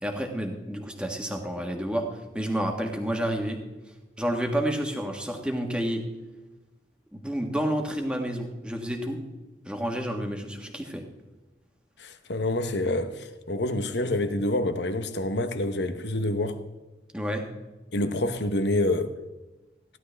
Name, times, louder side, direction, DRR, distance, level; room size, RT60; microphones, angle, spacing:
voice 1, 0.0-3.6 4.2-6.0 7.1-9.2 9.6-11.0 17.1-17.5, equal, 5° right, 1.4 m, -30 dB
voice 2, 12.0-16.6 17.9-19.1, left 1 dB, 80° left, 1.0 m, -27 dB
16.0 x 11.5 x 3.4 m
head